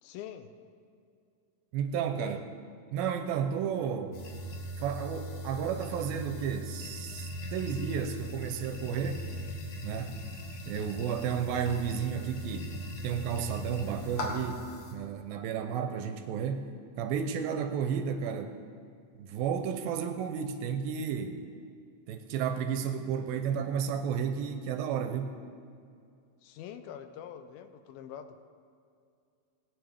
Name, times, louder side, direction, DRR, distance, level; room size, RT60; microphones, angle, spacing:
voice 1, 0.0-0.5 2.2-2.4 26.4-28.4, left 9 dB, 85° left, 9 dB, 2.4 m, -44 dB
voice 2, 1.7-2.4 2.9-4.2 4.8-9.3 9.8-10.2 10.7-16.7 17.0-18.6 19.2-21.4 22.1-25.4, right 7 dB, 85° right, 7 dB, 2.4 m, -32 dB
sound 1, 4.1-14.9, left 1 dB, 60° left, 2.5 m, -39 dB
19.5 x 9.3 x 3.4 m, 2.3 s
omnidirectional pair, 4.3 m